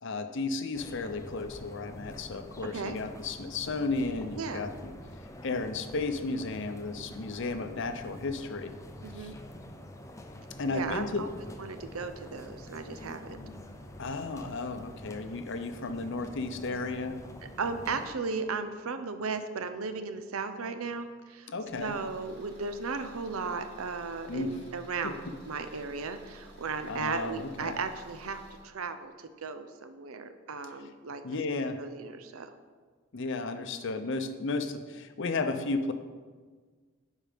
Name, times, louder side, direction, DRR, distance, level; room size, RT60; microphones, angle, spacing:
voice 1, 0.0-4.9 5.4-8.7 9.1-9.3 10.6-11.3 14.0-17.2 21.5-21.9 24.3-24.6 25.0-25.3 26.8-27.8 31.2-31.8 33.1-35.9, left 3 dB, 60° left, 9 dB, 0.7 m, -34 dB
sound 1, 0.7-18.1, left 1 dB, 15° left, 0.5 m, -46 dB
voice 2, 9.0-9.3 10.7-11.3 11.6-13.4 17.6-21.5 21.8-31.2 31.8-32.5, right 4 dB, 85° right, 9 dB, 0.7 m, -36 dB
Car / Engine, 21.6-28.7, equal, 50° right, 2.2 m, -53 dB
10.0 x 4.6 x 5.2 m, 1.5 s
head